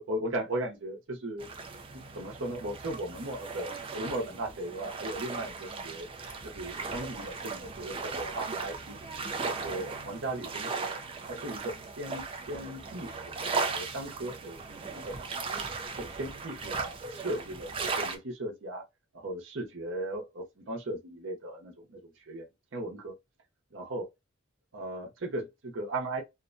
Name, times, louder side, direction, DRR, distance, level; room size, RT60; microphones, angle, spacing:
voice 1, 0.0-1.5 1.9-6.1 6.4-9.0 9.4-10.8 11.3-15.4 16.0-18.8 19.1-23.1 23.7-24.1 24.7-26.2, right 1 dB, 70° right, 0.8 m, -37 dB
sound 1, 1.4-18.2, right 4 dB, 25° right, 0.3 m, -37 dB
2.6 x 2.2 x 2.5 m
head